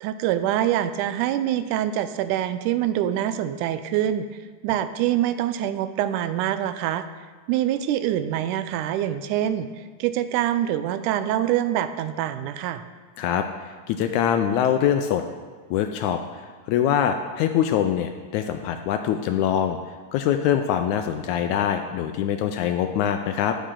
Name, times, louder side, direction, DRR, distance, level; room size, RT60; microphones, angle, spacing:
voice 1, 0.0-4.3 4.6-7.1 7.5-12.8, right 11 dB, 80° right, 11 dB, 2.0 m, -25 dB
voice 2, 13.2-15.2 15.7-19.8 20.1-23.6, left 9 dB, 80° left, 7 dB, 1.8 m, -24 dB
11.5 x 8.5 x 3.8 m, 1.5 s
omnidirectional pair, 3.6 m